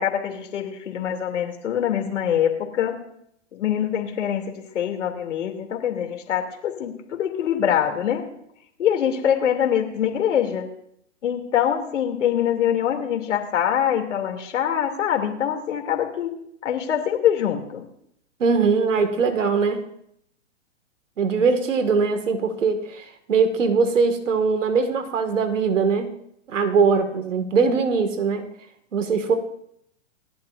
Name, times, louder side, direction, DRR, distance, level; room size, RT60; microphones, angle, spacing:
voice 1, 0.0-3.0 3.5-8.2 8.8-10.7 11.2-16.4 16.6-17.8, left 9 dB, 75° left, 3 dB, 2.8 m, -24 dB
voice 2, 18.4-19.8 21.2-26.1 26.5-28.5 28.9-29.4, right 5 dB, 85° right, 7 dB, 2.0 m, -21 dB
28.0 x 11.5 x 2.6 m, 0.72 s
hypercardioid pair, 130°, 37 cm